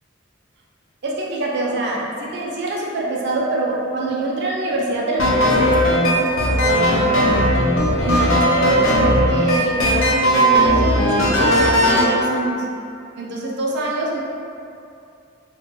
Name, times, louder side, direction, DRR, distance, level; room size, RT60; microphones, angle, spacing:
voice 1, 1.0-7.3 8.0-12.6 13.2-14.2, right 2 dB, 60° right, -3 dB, 0.5 m, -24 dB
sound 1, 5.2-12.1, equal, 80° left, 0.5 m, -17 dB
2.4 x 2.2 x 3.9 m, 2.5 s
head